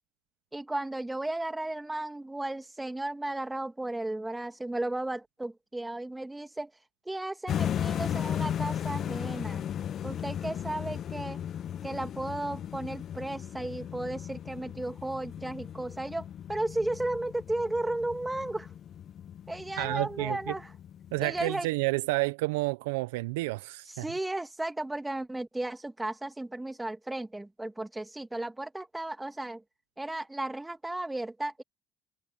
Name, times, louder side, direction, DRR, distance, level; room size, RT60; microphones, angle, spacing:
voice 1, 0.5-6.7 7.1-9.7 10.0-11.4 11.8-18.7 19.5-20.7 21.2-21.7 23.9-29.6 30.0-31.6, right 2 dB, 10° right, 2.4 m, -34 dB
sound 1, 7.5-21.5, left 9 dB, 55° left, 0.7 m, -36 dB
voice 2, 19.8-20.5 21.1-24.0, right 22 dB, 85° right, 0.7 m, -30 dB
hypercardioid pair, 65°, 0 cm